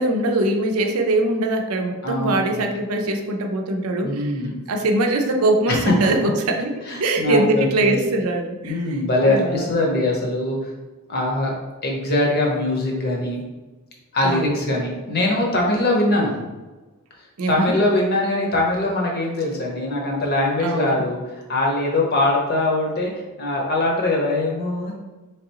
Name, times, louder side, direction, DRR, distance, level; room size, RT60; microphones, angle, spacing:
voice 1, 0.0-4.3 4.7-6.7 7.0-8.8 9.2-9.7 14.2-14.5 17.4-17.8 20.6-21.0, right 2 dB, 85° right, 3 dB, 0.5 m, -22 dB
voice 2, 2.0-2.7 4.0-4.6 5.7-5.9 6.8-7.9 8.6-10.7 11.1-11.5 11.8-13.4 14.1-16.4 17.5-23.1 23.4-24.9, left 2 dB, 45° left, -1 dB, 0.9 m, -22 dB
3.7 x 3.3 x 2.9 m, 1.2 s
head